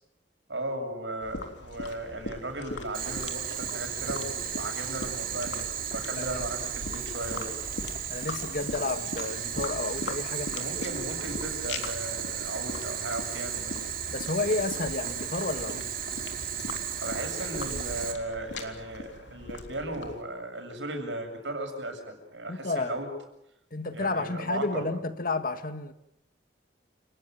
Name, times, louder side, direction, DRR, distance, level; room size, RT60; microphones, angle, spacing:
voice 1, 0.5-7.6 10.6-13.8 17.0-23.1 23.9-24.8, right 1 dB, 85° right, 7.3 m, -36 dB
sound 1, 1.2-20.2, left 2 dB, 80° left, 3.5 m, -41 dB
Boiling, 2.9-18.1, right 8 dB, 55° right, 3.2 m, -35 dB
voice 2, 8.1-10.6 14.1-15.9 22.5-23.0 23.7-25.9, left 3 dB, 50° left, 1.8 m, -31 dB
29.5 x 19.0 x 9.3 m
head